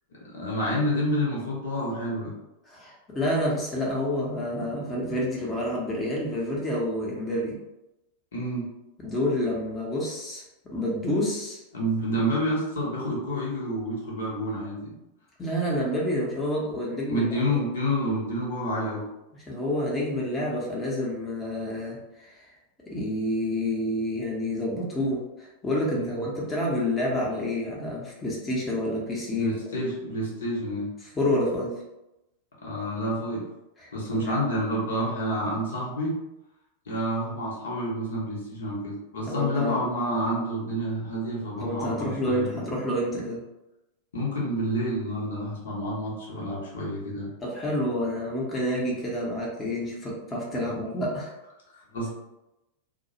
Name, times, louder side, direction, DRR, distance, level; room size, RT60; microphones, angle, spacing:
voice 1, 0.1-2.3 8.3-8.7 11.7-15.0 17.1-19.1 25.9-26.2 29.3-30.9 32.6-33.4 33.9-36.2 36.9-42.6 44.1-47.3 50.7-50.8 51.7-52.1, equal, 65° left, -4 dB, 0.7 m, -29 dB
voice 2, 2.7-7.6 9.0-11.6 15.4-17.3 19.5-22.4 22.9-29.6 31.1-31.7 33.8-34.3 39.3-39.8 41.6-43.4 47.4-51.3, left 1 dB, 15° left, -4 dB, 0.7 m, -28 dB
2.2 x 2.0 x 2.7 m, 0.93 s
figure-of-eight pair, 90°, 0 cm